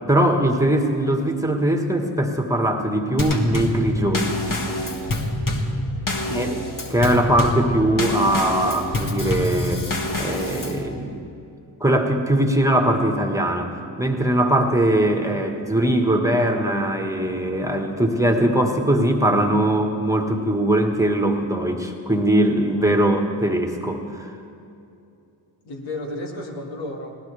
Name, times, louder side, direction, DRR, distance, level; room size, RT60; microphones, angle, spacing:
voice 1, 0.1-4.4 6.3-6.6 6.9-9.9 10.2-11.3 11.8-24.3, right 1 dB, 5° right, 3 dB, 1.5 m, -21 dB
Drum kit / Snare drum / Bass drum, 3.2-10.9, left 1 dB, 45° left, 1.9 m, -26 dB
voice 2, 6.0-6.5 25.6-27.2, left 1 dB, 80° left, 1 dB, 2.1 m, -33 dB
19.5 x 17.5 x 3.4 m, 2.6 s
cardioid pair, 65°, 45 cm